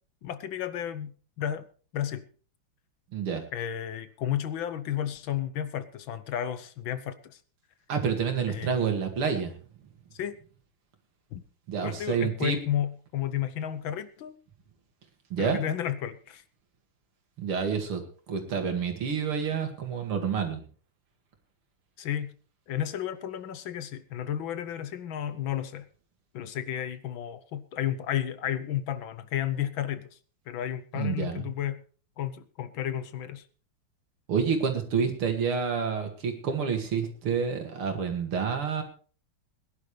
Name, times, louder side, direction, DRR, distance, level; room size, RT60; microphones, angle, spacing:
voice 1, 0.2-1.6 1.9-2.3 3.5-7.4 8.5-8.8 10.1-10.4 11.3-11.4 11.8-14.3 15.4-16.4 22.0-22.3 22.7-25.9 26.3-30.2 30.5-31.8 32.2-33.4, left 10 dB, 70° left, 13 dB, 1.6 m, -32 dB
voice 2, 3.1-3.4 7.9-9.5 11.7-12.6 15.3-15.6 17.4-20.6 30.9-31.4 34.3-38.8, right 6 dB, 90° right, 5 dB, 3.0 m, -28 dB
21.0 x 11.0 x 3.3 m, 0.40 s
omnidirectional pair, 2.3 m